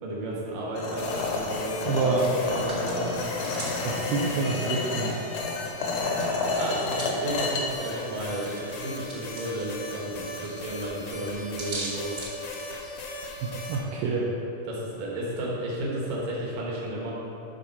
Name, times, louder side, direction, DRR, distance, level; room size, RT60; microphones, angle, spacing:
voice 1, 0.0-3.1 6.5-12.1 14.6-17.1, right 1 dB, 65° right, -4 dB, 3.0 m, -33 dB
sound 1, 0.8-7.6, left 3 dB, 65° left, 1.9 m, -30 dB
sound 2, 1.0-13.8, left 2 dB, 85° left, 1.3 m, -38 dB
Hands, 1.9-5.6 5.8-13.1, right 2 dB, 50° right, 1.1 m, -42 dB
voice 2, 1.9-2.3 3.8-5.1 13.4-14.2, right 4 dB, 80° right, -4 dB, 2.4 m, -27 dB
11.0 x 4.2 x 5.8 m, 2.8 s
omnidirectional pair, 4.2 m